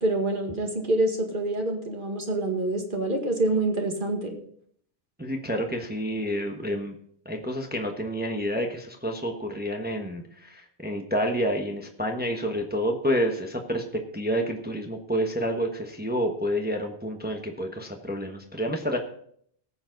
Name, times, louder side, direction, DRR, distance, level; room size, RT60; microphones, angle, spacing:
voice 1, 0.0-4.3, right 2 dB, 45° right, 3 dB, 2.0 m, -26 dB
voice 2, 5.2-6.9 7.2-13.8 14.1-19.0, equal, 10° right, 3 dB, 1.1 m, -29 dB
19.0 x 7.1 x 3.9 m, 0.63 s
omnidirectional pair, 1.1 m